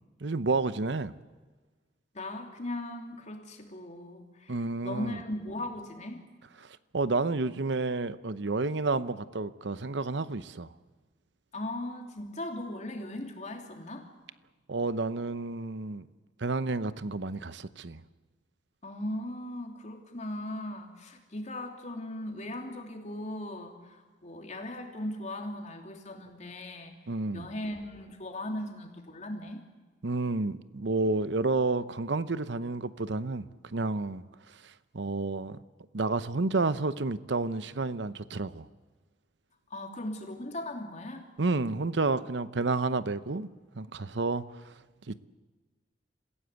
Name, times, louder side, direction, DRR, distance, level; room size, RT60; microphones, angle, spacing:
voice 1, 0.2-1.1 4.5-5.2 6.6-10.7 14.7-16.1 16.4-18.0 27.1-27.5 30.0-33.4 33.7-35.6 35.9-38.7 41.4-43.5 43.7-44.7 45.1-45.3, right 3 dB, 70° right, 0.8 m, -30 dB
voice 2, 2.1-4.5 4.8-6.2 11.5-14.1 18.8-27.0 27.3-29.6 39.7-41.3, left 1 dB, 40° left, 3.1 m, -38 dB
27.0 x 15.5 x 8.3 m
head